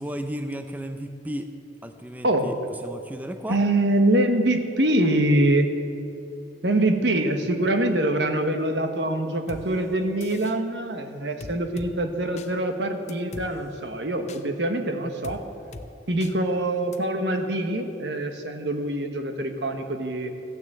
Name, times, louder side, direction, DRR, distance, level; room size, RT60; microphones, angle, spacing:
voice 1, 0.0-1.5 1.8-3.6, equal, 10° right, 7 dB, 0.5 m, -34 dB
voice 2, 2.2-2.6 3.5-5.7 6.6-15.4 16.1-20.3, right 1 dB, 75° right, 6 dB, 1.4 m, -24 dB
sound 1, 9.5-9.6 10.2-10.6 11.4-11.9 12.4-12.5 13.1-13.5 14.3-14.4 15.2-15.4 15.7-15.9 16.2-16.3 16.9-17.0, left 2 dB, 40° left, 0.8 m, -39 dB
14.5 x 9.7 x 7.8 m, 2.7 s
head